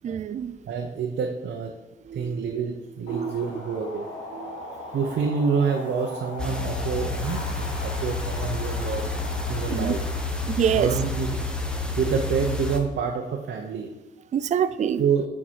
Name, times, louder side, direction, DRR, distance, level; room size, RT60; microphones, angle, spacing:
voice 1, 0.0-0.6 2.1-2.4 3.1-3.3 4.3-4.7 9.7-9.9 10.6-11.0 14.3-15.0, right 8 dB, 35° right, 0.4 m, -26 dB
voice 2, 0.6-1.7 2.1-4.1 4.9-9.1 9.5-10.0 10.7-11.4 12.0-13.9 15.0-15.3, right 6 dB, 60° right, 0.9 m, -27 dB
sound 1, 3.1-11.8, left 1 dB, 75° left, 1.8 m, -40 dB
sound 2, 6.4-12.8, left 3 dB, 5° left, 1.1 m, -29 dB
8.7 x 4.9 x 4.6 m
cardioid pair, 90°, 20 cm